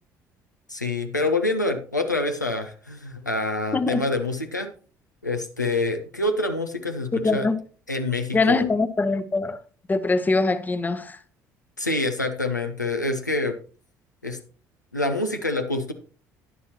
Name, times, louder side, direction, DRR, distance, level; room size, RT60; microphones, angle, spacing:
voice 1, 0.7-4.7 5.2-7.5 7.9-8.7 11.8-13.6 14.2-14.4 14.9-15.9, left 2 dB, 90° left, 0.8 m, -26 dB
voice 2, 7.1-7.6 8.3-9.6 9.9-11.2, left 3 dB, 20° left, 0.8 m, -23 dB
11.0 x 9.9 x 2.9 m
figure-of-eight pair, 55°, 9 cm